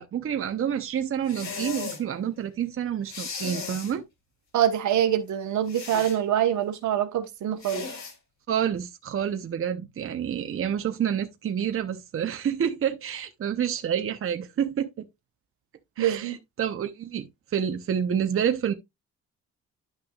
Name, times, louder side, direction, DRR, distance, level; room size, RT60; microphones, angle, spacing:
voice 1, 0.0-4.0 8.5-15.0 16.0-18.7, right 9 dB, 45° right, 0.9 m, -28 dB
sound 1, 1.2-2.0 3.1-3.9 5.7-6.2 7.6-8.1, left 5 dB, 65° left, 3.4 m, -36 dB
voice 2, 4.5-7.9 16.0-16.4, right 10 dB, 70° right, 1.3 m, -25 dB
11.0 x 5.9 x 2.4 m
cardioid pair, 90°, 30 cm